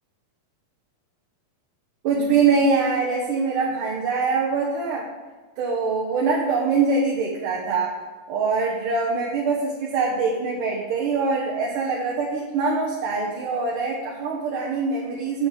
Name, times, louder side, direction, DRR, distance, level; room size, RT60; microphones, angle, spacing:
voice 1, 2.0-5.1 5.6-8.0 8.3-15.5, right 4 dB, 70° right, -4 dB, 2.3 m, -23 dB
8.1 x 5.1 x 7.3 m, 1.3 s
omnidirectional pair, 4.3 m